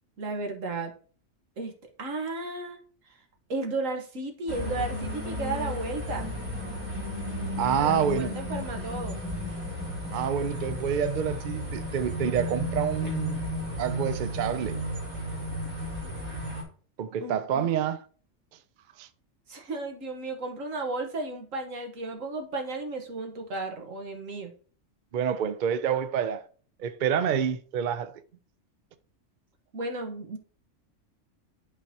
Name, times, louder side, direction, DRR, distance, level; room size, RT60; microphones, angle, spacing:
voice 1, 0.2-0.9 1.6-1.7 2.0-2.8 3.5-6.3 7.8-9.2 17.2-17.7 19.5-24.5 29.7-30.4, right 2 dB, 75° right, 1.6 m, -34 dB
sound 1, 4.5-16.6, left 1 dB, 25° right, 2.6 m, -33 dB
voice 2, 7.6-8.4 10.1-13.4 13.8-14.8 17.0-18.0 19.0-19.1 25.1-26.5 26.8-28.2, right 8 dB, 60° right, 0.5 m, -28 dB
11.0 x 4.0 x 2.8 m
omnidirectional pair, 1.3 m